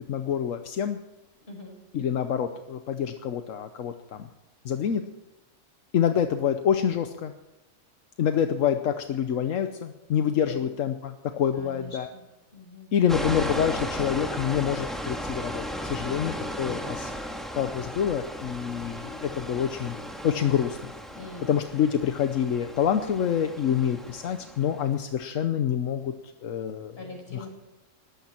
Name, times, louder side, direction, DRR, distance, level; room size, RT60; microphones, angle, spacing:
voice 1, 0.1-1.0 1.9-4.3 4.6-5.0 5.9-7.3 8.2-12.1 12.9-17.1 17.5-19.9 20.2-20.9 21.5-26.1 26.4-27.0 27.3-27.4, left 8 dB, 85° left, 8 dB, 1.2 m, -27 dB
voice 2, 11.5-12.2 12.5-12.9 16.0-17.0 21.1-21.6 27.0-27.5, left 2 dB, 50° left, 1 dB, 5.4 m, -42 dB
Space Machinery, 13.1-24.8, equal, ahead, 1.9 m, -36 dB
20.0 x 14.5 x 4.4 m, 0.99 s
omnidirectional pair, 1.3 m